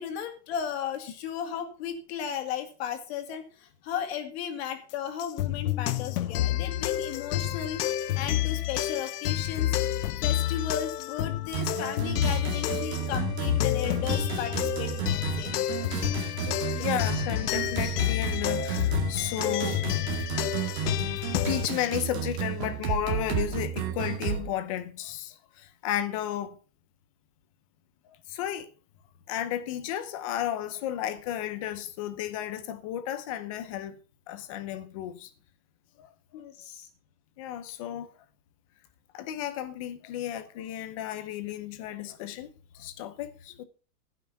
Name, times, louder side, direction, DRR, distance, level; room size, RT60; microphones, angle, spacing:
voice 1, 0.0-9.8 10.2-15.5 16.4-16.9 36.3-36.9, left 8 dB, 40° left, 2.2 m, -35 dB
sound 1, 5.2-21.7, left 13 dB, 75° left, 0.9 m, -29 dB
sound 2, 11.5-24.5, right 9 dB, 40° right, 2.3 m, -33 dB
voice 2, 15.8-16.2 16.8-19.8 21.5-26.6 28.1-28.7 29.3-34.0 34.3-35.3 36.0-36.1 37.4-38.1 39.1-43.6, left 11 dB, 20° left, 0.7 m, -33 dB
14.5 x 6.1 x 5.7 m
supercardioid pair, 175°, 47 cm